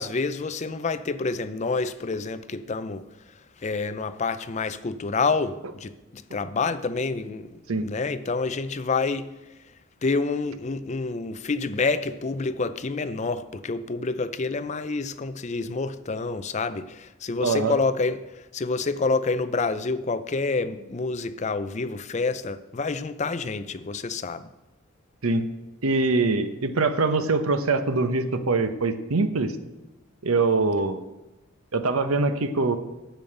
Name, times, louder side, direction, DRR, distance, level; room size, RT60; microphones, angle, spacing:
voice 1, 0.0-3.0 3.6-7.5 7.8-9.3 10.0-18.3 18.5-24.5, left 3 dB, 35° left, 0.4 m, -28 dB
voice 2, 17.4-17.8 25.2-25.5 25.8-29.6 30.2-31.0 31.7-32.8, right 3 dB, 90° right, 0.9 m, -23 dB
9.0 x 7.0 x 7.8 m
head